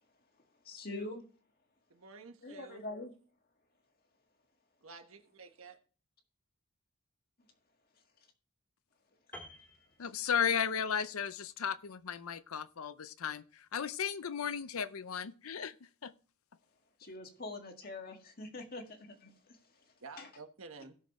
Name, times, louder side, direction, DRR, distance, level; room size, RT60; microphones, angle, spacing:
voice 1, 0.6-1.3 2.4-3.1 17.0-19.6 20.2-20.3, left 2 dB, 45° left, 1.7 m, -44 dB
voice 2, 1.9-2.8 4.8-5.8 20.0-20.9, right 4 dB, 70° right, 1.3 m, -51 dB
Piano, 9.3-10.8 11.0-11.3, left 1 dB, 5° left, 2.0 m, -52 dB
voice 3, 10.0-13.4 13.7-15.7 16.0-16.1, left 7 dB, 75° left, 0.6 m, -35 dB
17.0 x 6.5 x 3.1 m
head